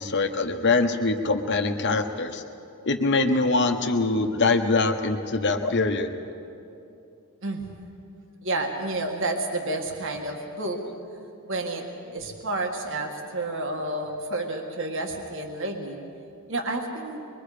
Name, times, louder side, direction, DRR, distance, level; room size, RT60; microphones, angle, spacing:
voice 1, 0.0-2.4 2.8-6.1, left 3 dB, 50° left, 6 dB, 1.2 m, -23 dB
voice 2, 8.4-10.8 11.5-11.9 12.1-16.0 16.5-17.2, right 2 dB, 60° right, 2 dB, 1.8 m, -30 dB
25.0 x 22.0 x 5.1 m, 2.7 s
head